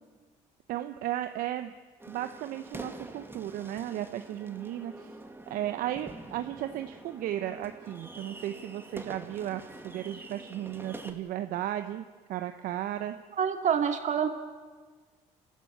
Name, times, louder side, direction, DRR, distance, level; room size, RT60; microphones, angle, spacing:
voice 1, 0.7-1.7 2.1-5.2 5.5-13.2, right 12 dB, 70° right, 9 dB, 0.8 m, -35 dB
sound 1, 2.0-11.1, right 2 dB, 15° right, 2.2 m, -46 dB
voice 2, 13.4-14.3, right 7 dB, 55° right, 6 dB, 2.3 m, -26 dB
28.5 x 13.0 x 8.6 m, 1.5 s
supercardioid pair, 75°, 15 cm